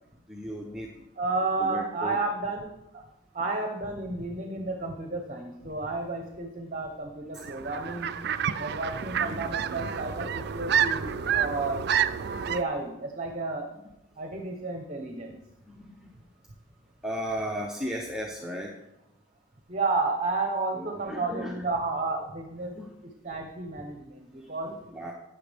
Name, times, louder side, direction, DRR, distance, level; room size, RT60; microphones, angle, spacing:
voice 1, 0.3-0.9 1.6-2.2 7.3-7.4 8.9-9.4 15.7-16.1 17.0-18.7 20.8-21.6 22.7-22.9 24.4-25.1, equal, 5° right, -2 dB, 0.7 m, -36 dB
voice 2, 1.2-3.0 3.3-8.1 8.6-11.9 12.5-13.7 14.2-15.4 19.7-22.8 23.2-24.7, right 3 dB, 35° right, 3 dB, 0.9 m, -32 dB
sound 1, 7.4-12.6, right 8 dB, 50° right, 0.4 m, -29 dB
11.5 x 8.8 x 3.5 m, 0.90 s
head